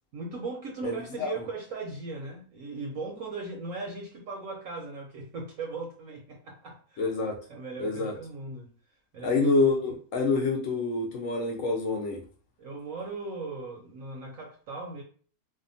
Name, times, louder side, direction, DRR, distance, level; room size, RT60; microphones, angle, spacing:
voice 1, 0.1-7.1 7.5-8.7 9.1-9.5 12.6-15.0, right 3 dB, 70° right, 1 dB, 0.9 m, -38 dB
voice 2, 0.8-1.3 7.0-7.4 7.8-8.1 9.2-12.2, left 3 dB, 65° left, -1 dB, 0.9 m, -27 dB
2.7 x 2.2 x 2.5 m, 0.43 s
omnidirectional pair, 1.6 m